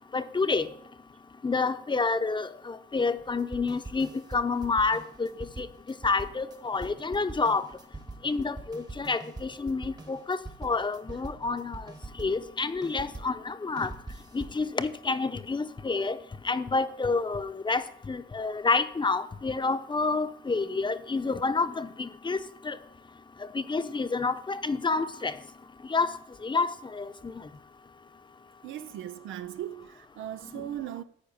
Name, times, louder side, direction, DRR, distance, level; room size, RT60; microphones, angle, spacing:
voice 1, 0.1-0.7 1.4-5.3 5.6-5.7 6.0-7.6 8.2-11.8 12.2-13.9 14.3-16.2 16.4-22.4 22.6-22.8 23.5-25.3 25.9-26.1 26.4-27.3, left 4 dB, 25° left, 0.9 m, -29 dB
sound 1, 3.2-13.4 13.8-14.6, right 2 dB, 20° right, 1.2 m, -43 dB
voice 2, 28.6-31.0, right 12 dB, 85° right, 0.7 m, -38 dB
14.0 x 5.1 x 8.8 m
cardioid pair, 90°, 20 cm